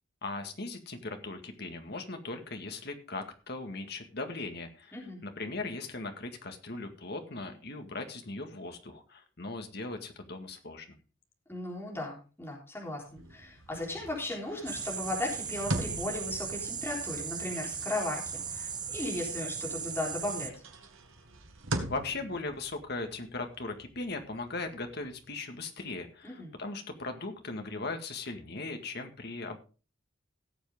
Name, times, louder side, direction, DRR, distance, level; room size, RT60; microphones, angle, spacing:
voice 1, 0.2-11.0 21.9-29.6, left 3 dB, 55° left, 5 dB, 1.9 m, -39 dB
voice 2, 4.9-5.2 11.5-20.5 26.2-26.5, left 1 dB, 10° left, -2 dB, 3.8 m, -36 dB
sound 1, 13.1-19.5 19.9-25.3, right 1 dB, 85° right, 2.1 m, -42 dB
sound 2, 14.7-20.5, right 6 dB, 20° right, 0.9 m, -37 dB
17.5 x 7.4 x 3.6 m, 0.35 s
head